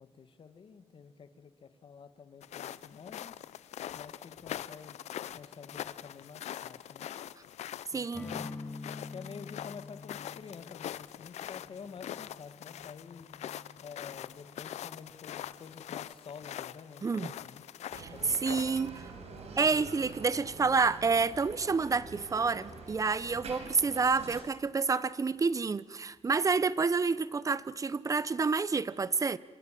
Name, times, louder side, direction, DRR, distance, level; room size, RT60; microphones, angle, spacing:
voice 1, 0.0-3.4 3.9-5.0 5.3-7.1 7.9-8.5 9.1-13.3 13.8-17.6 18.1-19.1, left 6 dB, 50° left, 1.9 m, -49 dB
sound 1, 2.4-18.9, left 11 dB, 85° left, 0.7 m, -43 dB
voice 2, 7.9-8.3 17.0-17.3 18.0-18.9 19.6-29.4, right 4 dB, 30° right, 0.9 m, -29 dB
sound 2, 8.1-15.8, left 3 dB, 10° left, 4.2 m, -48 dB
Bicycle, 17.9-24.4, right 4 dB, 75° right, 5.0 m, -46 dB
27.5 x 25.5 x 7.6 m
cardioid pair, 110°, 11 cm